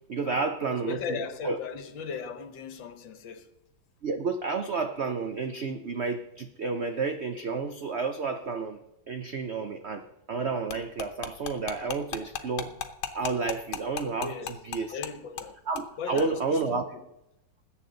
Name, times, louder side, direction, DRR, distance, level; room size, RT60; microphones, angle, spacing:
voice 1, 0.1-1.0 1.4-1.6 4.0-8.8 9.1-12.7 13.1-14.3 14.7-15.0 15.7-16.8, right 4 dB, 85° right, 0.5 m, -31 dB
voice 2, 0.7-3.5 14.2-14.6 14.9-15.6 16.0-17.1, left 6 dB, 70° left, 1.8 m, -37 dB
sound 1, 10.7-15.1 15.4-15.5 15.8-15.9 16.2-16.3, left 9 dB, 90° left, 1.7 m, -35 dB
20.5 x 8.6 x 3.9 m
omnidirectional pair, 2.1 m